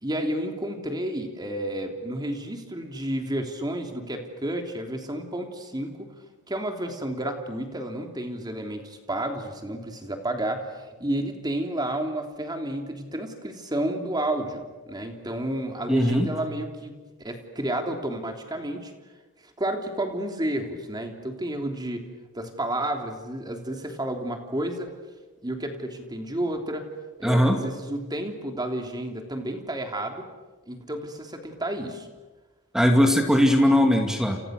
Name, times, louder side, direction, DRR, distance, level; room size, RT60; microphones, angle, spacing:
voice 1, 0.0-6.1 6.5-18.9 19.6-22.0 22.3-24.9 25.4-26.9 27.2-30.2 30.7-32.1, right 1 dB, 20° right, 4 dB, 3.3 m, -31 dB
voice 2, 15.9-16.3 27.2-27.6 32.7-34.4, equal, 5° right, 4 dB, 2.5 m, -19 dB
30.0 x 29.0 x 6.6 m, 1.3 s
head